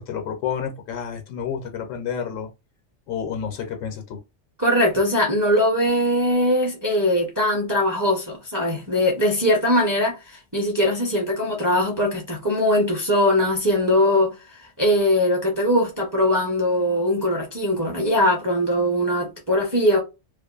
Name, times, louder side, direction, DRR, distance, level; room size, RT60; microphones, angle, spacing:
voice 1, 0.0-2.5 3.1-4.2, left 7 dB, 85° left, 1.0 m, -30 dB
voice 2, 4.6-14.3 14.8-20.0, left 1 dB, 25° right, 0.5 m, -21 dB
2.5 x 2.4 x 2.3 m
omnidirectional pair, 1.3 m